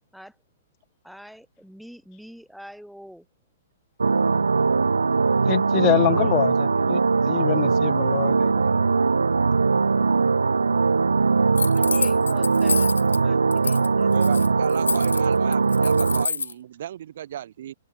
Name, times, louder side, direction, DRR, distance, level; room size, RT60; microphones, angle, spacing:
voice 1, 1.0-3.3 6.0-6.4 11.7-12.9 13.2-14.6, equal, ahead, 4.3 m, -45 dB
sound 1, 4.0-16.3, right 4 dB, 75° right, 1.2 m, -20 dB
voice 2, 5.5-7.0 7.3-8.5, left 26 dB, 35° left, 0.4 m, -25 dB
sound 2, 11.6-13.2 13.5-13.9 14.1-16.5, left 5 dB, 75° left, 0.8 m, -28 dB
voice 3, 14.1-17.7, right 11 dB, 55° right, 2.7 m, -35 dB
figure-of-eight pair, 115°, 0 cm